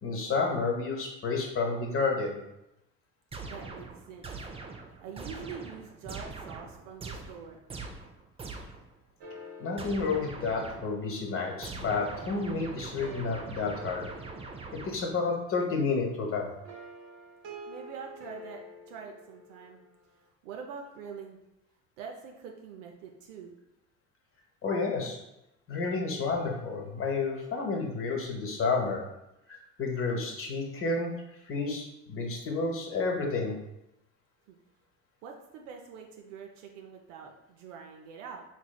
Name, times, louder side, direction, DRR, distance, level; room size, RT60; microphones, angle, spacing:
voice 1, 0.0-2.4 9.6-14.1 14.7-16.5 24.6-25.2 25.7-29.0 29.5-31.1 31.4-33.6, left 4 dB, 35° left, 1 dB, 1.0 m, -30 dB
sound 1, 3.3-8.9 9.8-11.1 11.6-15.3, right 3 dB, 15° right, 0.4 m, -43 dB
voice 2, 3.5-4.3 5.0-7.6 17.7-19.8 20.4-21.4 22.0-23.5 34.5-34.6 35.2-38.4, right 6 dB, 85° right, 1 dB, 0.6 m, -44 dB
sound 2, 9.2-12.2 12.8-15.5 16.7-19.9, equal, 45° right, 0.9 m, -49 dB
4.3 x 3.1 x 2.2 m, 0.87 s
supercardioid pair, 85°, 36 cm